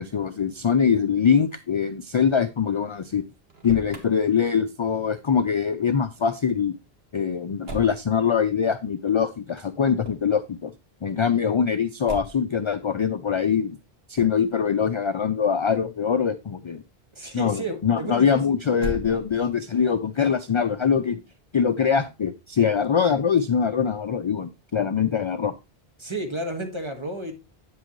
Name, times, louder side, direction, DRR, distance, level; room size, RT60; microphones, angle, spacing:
voice 1, 0.0-3.2 3.6-6.7 7.1-10.7 11.0-13.8 14.1-16.8 17.3-21.2 21.5-25.5, left 7 dB, 55° left, 0.3 m, -23 dB
Motor vehicle (road), 3.4-4.1 7.6-8.0 10.0-10.4 12.0-12.5 14.1-14.5 18.7-19.6, right 1 dB, 70° right, 1.7 m, -36 dB
voice 2, 17.1-18.6 26.0-27.3, right 1 dB, 25° right, 1.6 m, -32 dB
8.9 x 7.6 x 3.0 m
omnidirectional pair, 1.1 m